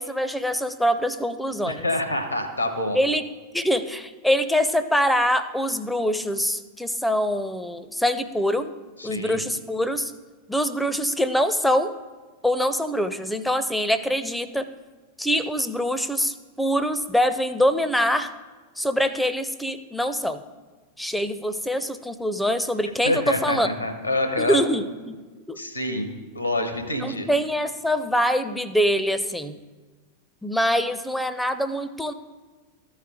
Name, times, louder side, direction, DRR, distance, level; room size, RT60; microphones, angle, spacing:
voice 1, 0.0-1.9 2.9-3.2 3.5-8.7 9.0-10.1 10.5-11.9 12.4-14.7 15.2-18.3 18.8-20.4 21.0-23.7 24.4-25.2 25.5-25.6 27.0-29.6 30.4-32.1, equal, 5° left, 11 dB, 0.4 m, -24 dB
voice 2, 1.6-3.0 9.0-9.4 23.0-24.6 25.6-26.1 26.3-27.3, left 1 dB, 85° left, 6 dB, 0.9 m, -26 dB
13.5 x 4.8 x 3.6 m, 1.3 s
figure-of-eight pair, 90°, 0 cm